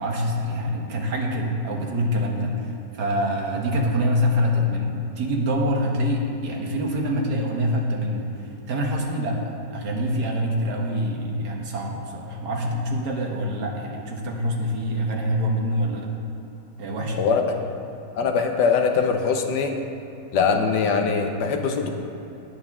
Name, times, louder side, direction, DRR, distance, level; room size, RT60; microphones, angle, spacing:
voice 1, 0.0-16.1 16.8-17.4, equal, 80° right, 0 dB, 1.9 m, -25 dB
voice 2, 18.1-19.7 20.3-21.9, left 5 dB, 90° left, 4 dB, 1.5 m, -22 dB
18.5 x 6.5 x 3.7 m, 2.9 s
omnidirectional pair, 1.8 m